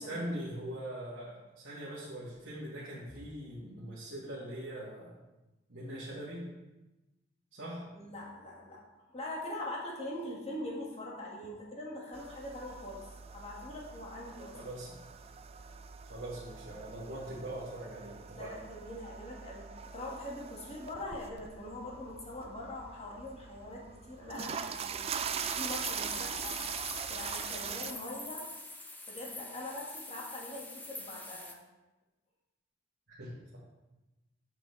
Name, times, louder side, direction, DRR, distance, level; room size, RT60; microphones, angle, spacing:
voice 1, 0.0-5.1 5.7-6.4 7.5-7.8 14.5-15.0 16.1-18.6 33.1-33.6, right 1 dB, 65° right, -8 dB, 1.7 m, -42 dB
voice 2, 7.9-8.8 9.1-13.0 13.3-14.6 18.3-19.7 19.9-25.0 25.4-26.6 27.1-28.5 29.1-31.6, left 1 dB, 35° left, -3 dB, 1.6 m, -42 dB
sound 1, 12.1-27.9, right 7 dB, 30° right, 0.3 m, -42 dB
sound 2, 25.3-31.5, left 2 dB, 10° left, 0.6 m, -44 dB
7.8 x 6.2 x 3.2 m, 1.0 s
head